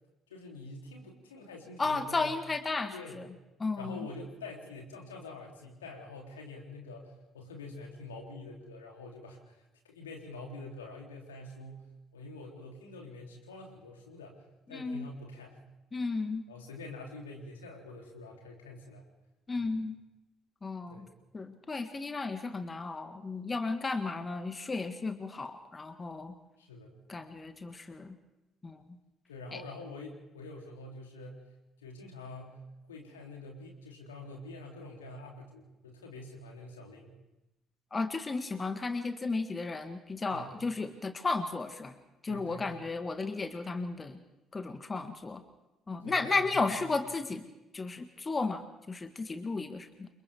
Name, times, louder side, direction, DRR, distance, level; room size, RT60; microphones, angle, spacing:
voice 1, 0.3-2.3 2.9-3.2 3.8-14.4 14.7-15.6 16.5-19.0 19.6-19.7 20.9-21.1 26.6-27.0 29.3-31.5 31.8-32.6 32.9-37.2 40.3-40.5 42.3-42.8 46.0-46.7, left 2 dB, 80° left, 0 dB, 3.2 m, -46 dB
voice 2, 1.8-3.2 3.6-4.1 14.7-15.1 15.9-16.4 19.5-19.9 20.6-21.1 21.3-26.3 27.1-28.1 28.6-28.8 29.5-29.6 37.9-42.0 42.2-44.2 44.5-45.4 45.9-47.4 47.7-50.1, left 3 dB, 25° left, 8 dB, 1.5 m, -34 dB
29.0 x 25.5 x 3.6 m, 0.98 s
figure-of-eight pair, 45°, 0 cm